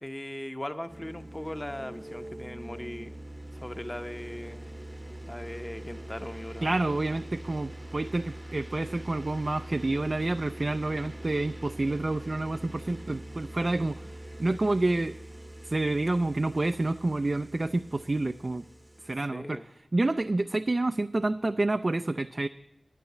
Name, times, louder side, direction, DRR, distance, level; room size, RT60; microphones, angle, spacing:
voice 1, 0.0-3.2 3.5-4.7 5.2-6.8 19.2-19.7, left 1 dB, 20° left, 9 dB, 0.9 m, -39 dB
sound 1, 0.9-19.1, right 1 dB, 15° right, 0.8 m, -43 dB
voice 2, 6.6-14.1 14.4-15.1 15.6-18.6 19.0-22.5, right 2 dB, 40° right, 8 dB, 0.4 m, -28 dB
11.0 x 9.4 x 8.2 m, 0.88 s
wide cardioid pair, 65°, 0 cm